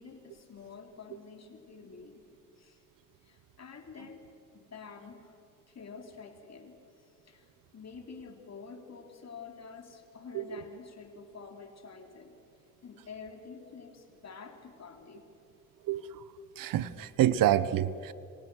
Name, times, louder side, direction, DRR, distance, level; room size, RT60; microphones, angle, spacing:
voice 1, 0.0-2.8 3.2-4.3 4.5-5.4 5.7-6.8 7.0-12.4 12.8-15.3, left 5 dB, 50° left, 4 dB, 3.4 m, -48 dB
voice 2, 15.8-16.2 16.6-18.1, right 12 dB, 80° right, 17 dB, 0.9 m, -27 dB
26.5 x 25.0 x 6.3 m, 2.7 s
cardioid pair, 70°, 33 cm